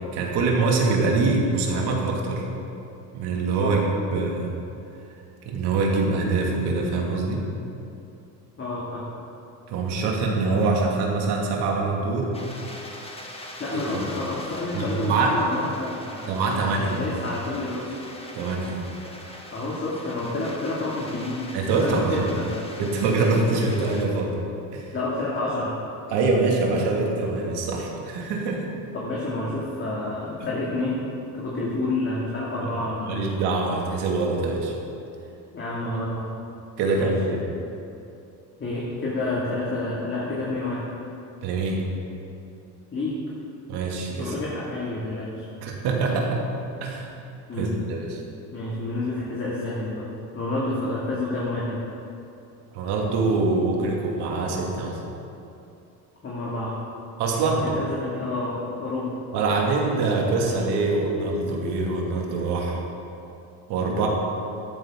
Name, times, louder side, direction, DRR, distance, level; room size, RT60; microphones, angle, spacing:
voice 1, 0.1-2.5 3.1-4.5 5.4-7.4 9.7-12.3 14.7-15.4 16.3-17.1 18.3-18.8 21.5-22.3 22.8-24.3 24.7-24.9 26.1-28.7 32.6-32.7 33.1-34.7 36.8-37.4 41.4-41.9 43.7-44.3 45.6-46.4 46.8-47.1 47.5-48.2 52.7-55.0 57.2-57.7 59.3-62.8 63.7-64.1, right 3 dB, 75° right, -1 dB, 2.4 m, -24 dB
voice 2, 8.6-9.1 13.6-16.3 16.7-18.0 19.5-21.5 21.8-22.5 24.9-25.8 28.9-31.0 31.3-33.3 35.5-36.3 36.9-37.1 38.6-40.8 42.9-43.2 44.2-45.5 47.5-47.8 48.5-50.1 50.3-51.8 56.2-56.8 57.6-59.2, left 2 dB, 30° left, -6 dB, 2.4 m, -29 dB
sound 1, 12.3-24.1, left 1 dB, 15° left, 1.6 m, -42 dB
13.0 x 11.0 x 3.8 m, 2.7 s
supercardioid pair, 100°, 40 cm